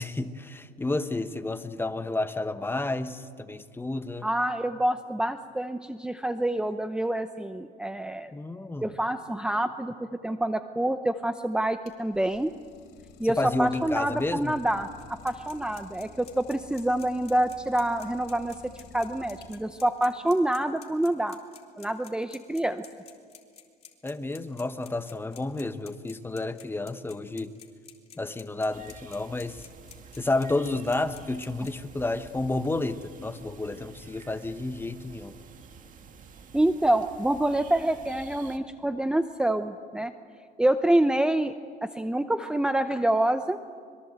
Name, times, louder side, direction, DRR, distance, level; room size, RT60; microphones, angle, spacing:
voice 1, 0.0-4.3 8.3-8.9 13.4-14.5 24.0-27.5 28.2-29.7 30.2-35.3, left 2 dB, 15° left, 10 dB, 1.1 m, -31 dB
voice 2, 4.2-8.3 8.8-9.9 10.2-12.5 13.2-14.9 15.2-21.4 21.8-22.8 36.5-40.1 40.6-41.5 41.8-43.6, right 1 dB, 5° right, 9 dB, 0.7 m, -27 dB
Idling, 11.6-19.9, left 6 dB, 85° left, 3.2 m, -51 dB
sound 1, 15.0-31.7, left 7 dB, 40° left, 3.2 m, -50 dB
sound 2, 28.7-38.6, right 5 dB, 50° right, 2.0 m, -49 dB
25.5 x 22.5 x 8.1 m, 2.1 s
cardioid pair, 110°, 17 cm